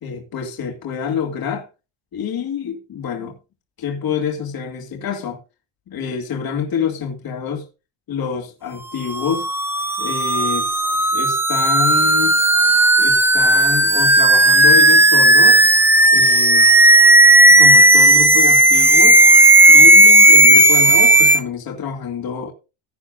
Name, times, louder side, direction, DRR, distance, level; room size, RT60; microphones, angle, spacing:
voice 1, 0.0-1.7 2.1-3.4 3.8-5.4 5.9-7.6 8.1-9.5 10.0-10.7 11.1-12.4 13.0-15.6 16.1-16.7 17.6-19.2 19.7-22.5, left 7 dB, 45° left, 2.3 m, -26 dB
sound 1, 9.1-21.4, right 1 dB, 5° right, 0.5 m, -12 dB
16.0 x 9.1 x 2.5 m
cardioid pair, 170°, 48 cm